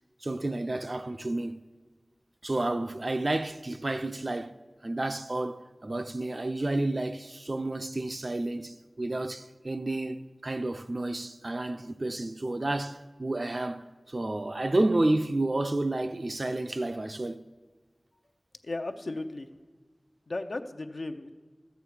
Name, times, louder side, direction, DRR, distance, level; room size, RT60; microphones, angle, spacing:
voice 1, 0.2-1.6 2.4-4.6 4.8-17.4, right 2 dB, 50° right, 0.4 m, -30 dB
voice 2, 18.6-19.5 20.3-21.3, left 2 dB, 75° left, 0.6 m, -35 dB
13.0 x 8.1 x 4.8 m
wide cardioid pair, 60°, 0 cm